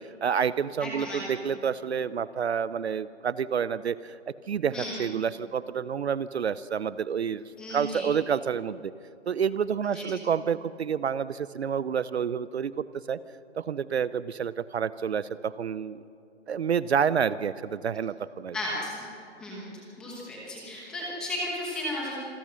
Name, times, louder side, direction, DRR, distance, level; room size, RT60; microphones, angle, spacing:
voice 1, 0.0-4.2 4.5-8.9 9.3-13.2 13.6-16.0 16.5-18.6, right 7 dB, 65° right, 17 dB, 0.6 m, -29 dB
voice 2, 0.8-1.2 4.7-5.0 7.6-8.1 9.8-10.2 18.5-19.0 19.4-22.2, left 1 dB, ahead, -4 dB, 1.1 m, -35 dB
26.5 x 15.5 x 6.3 m, 2.7 s
hypercardioid pair, 180°, 36 cm